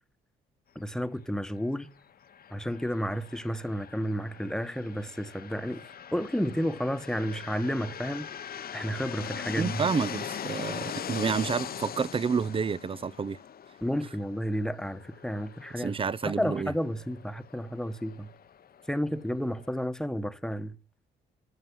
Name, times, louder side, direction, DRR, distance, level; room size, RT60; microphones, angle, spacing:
voice 1, 0.7-1.9 2.5-8.3 8.7-9.9 13.8-15.9 16.2-18.3 18.9-20.7, equal, 5° left, 1.2 m, -31 dB
sound 1, 2.2-19.8, left 8 dB, 50° left, 0.9 m, -42 dB
voice 2, 9.6-13.4 15.8-16.7, right 5 dB, 25° right, 0.5 m, -29 dB
14.5 x 7.4 x 7.0 m
cardioid pair, 90°, 20 cm